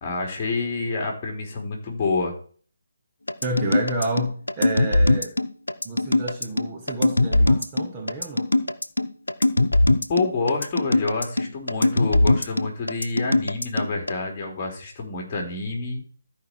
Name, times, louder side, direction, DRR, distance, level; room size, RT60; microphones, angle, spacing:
voice 1, 0.0-2.3 10.1-16.0, left 3 dB, 30° left, 0 dB, 3.3 m, -27 dB
sound 1, 3.3-14.1, left 2 dB, 90° left, 0.8 m, -21 dB
voice 2, 3.4-5.4 5.8-8.5, right 2 dB, 20° right, 0 dB, 1.8 m, -30 dB
13.5 x 5.1 x 4.5 m, 0.43 s
figure-of-eight pair, 150°, 0 cm